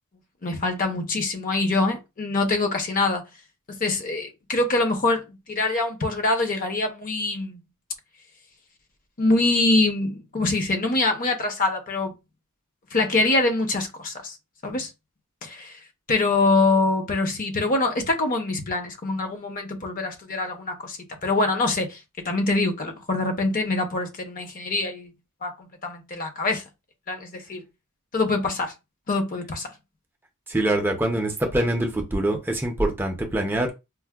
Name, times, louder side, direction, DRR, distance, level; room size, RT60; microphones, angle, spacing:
voice 1, 0.4-3.2 3.8-7.6 9.2-12.1 12.9-14.4 14.6-14.9 15.4-15.8 16.1-25.1 25.4-26.6 27.1-27.6 28.1-28.7 29.1-29.7, left 2 dB, 40° left, 0.6 m, -24 dB
voice 2, 30.5-33.7, right 1 dB, 10° right, 0.5 m, -24 dB
4.4 x 2.0 x 2.2 m
head